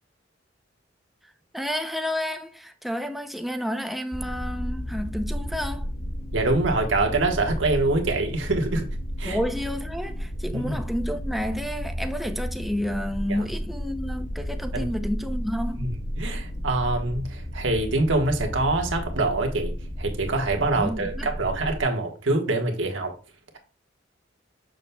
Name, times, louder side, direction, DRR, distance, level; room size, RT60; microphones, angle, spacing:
voice 1, 1.5-5.9 9.2-15.9 20.7-21.3, equal, ahead, 0.5 m, -30 dB
sound 1, 4.1-21.8, equal, 80° left, 2.5 m, -32 dB
voice 2, 6.3-8.9 9.2-9.4 10.5-10.8 13.3-13.4 14.7-14.9 15.8-19.7 20.0-23.1, right 2 dB, 90° right, 1.4 m, -25 dB
6.9 x 6.3 x 2.2 m
head